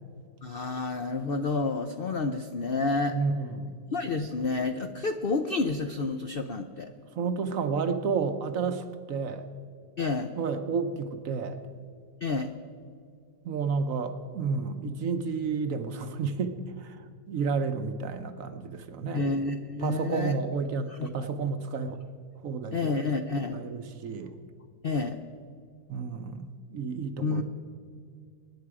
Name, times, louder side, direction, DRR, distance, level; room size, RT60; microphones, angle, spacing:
voice 1, 0.4-3.2 3.9-6.9 10.0-10.3 12.2-12.5 19.1-20.4 20.9-21.1 22.7-23.7 24.8-25.2 27.2-27.4, left 3 dB, 65° left, 7 dB, 0.5 m, -29 dB
voice 2, 3.1-3.9 7.2-9.5 10.4-11.6 13.4-17.0 17.3-19.2 19.8-22.0 22.4-23.0 23.5-24.3 25.9-27.4, right 5 dB, 60° right, 8 dB, 1.1 m, -31 dB
24.0 x 10.0 x 4.8 m, 2.2 s
omnidirectional pair, 1.8 m